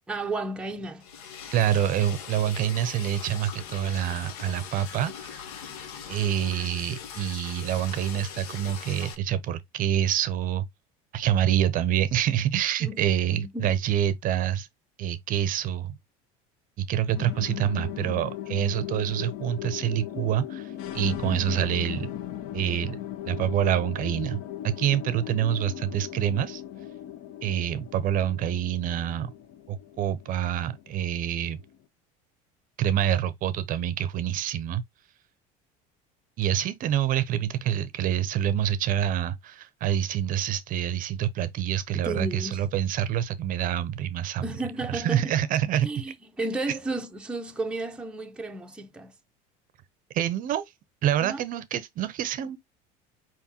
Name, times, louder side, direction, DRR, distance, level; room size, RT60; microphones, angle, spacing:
voice 1, 0.1-1.1 12.8-13.1 13.3-13.7 41.9-42.6 44.4-45.4 45.8-49.1 51.2-51.4, right 2 dB, 5° right, 0.6 m, -33 dB
Liquid, 1.0-9.1, left 7 dB, 85° left, 0.9 m, -41 dB
voice 2, 1.5-5.4 6.1-10.7 11.1-14.7 15.0-16.0 16.8-22.1 22.5-23.0 23.3-26.6 27.4-29.3 29.7-31.6 32.8-34.8 36.4-44.5 44.9-45.9 50.1-50.6 51.0-52.6, right 10 dB, 50° right, 0.6 m, -26 dB
sound 1, 17.2-31.8, left 12 dB, 60° left, 0.7 m, -38 dB
4.6 x 3.6 x 2.8 m
supercardioid pair, 110°, 19 cm